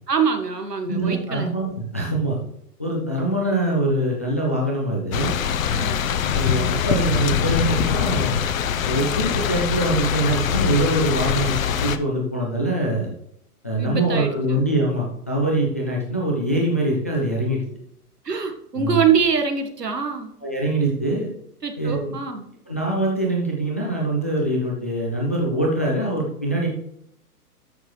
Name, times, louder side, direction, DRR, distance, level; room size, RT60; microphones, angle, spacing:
voice 1, 0.1-1.5 5.7-6.0 13.8-14.6 18.2-20.3 21.6-22.5, right 6 dB, 85° right, 5 dB, 1.8 m, -24 dB
voice 2, 0.8-2.4 2.8-5.3 6.3-8.4 8.8-13.1 13.6-17.6 18.8-19.0 20.4-21.3 21.8-22.2 22.7-26.7, right 1 dB, 10° left, -3 dB, 0.3 m, -23 dB
sound 1, 5.1-12.0, left 8 dB, 60° left, 0.9 m, -23 dB
12.5 x 6.3 x 3.3 m, 0.71 s
figure-of-eight pair, 120°, 47 cm